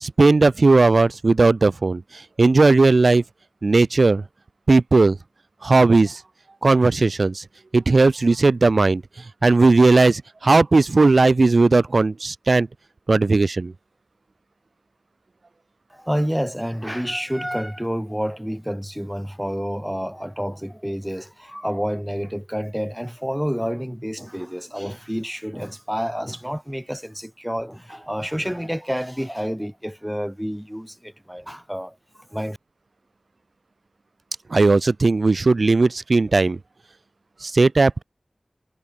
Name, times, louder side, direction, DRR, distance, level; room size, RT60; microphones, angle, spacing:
voice 1, 0.0-2.0 2.4-3.2 3.6-4.2 4.7-5.2 5.6-6.2 6.6-7.4 7.7-9.0 9.4-12.7 13.1-13.7 34.5-36.6 37.4-38.0, right 3 dB, 65° right, 2.1 m, -16 dB
voice 2, 15.9-32.0 32.3-32.6, equal, 5° right, 2.9 m, -29 dB
wide cardioid pair, 55°, 0 cm